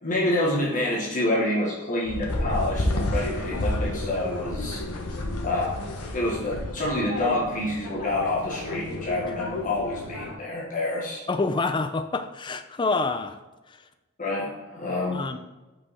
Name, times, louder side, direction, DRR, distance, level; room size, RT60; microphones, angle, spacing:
voice 1, 0.0-4.8 5.4-5.8 6.1-11.2 14.2-15.2, left 1 dB, 35° left, -4 dB, 1.4 m, -27 dB
sound 1, 2.0-10.3, left 1 dB, 85° left, 1.1 m, -31 dB
voice 2, 11.3-13.4 13.7-13.8 15.1-15.4, left 3 dB, 20° left, 9 dB, 0.4 m, -27 dB
5.7 x 5.4 x 4.1 m, 1.1 s
head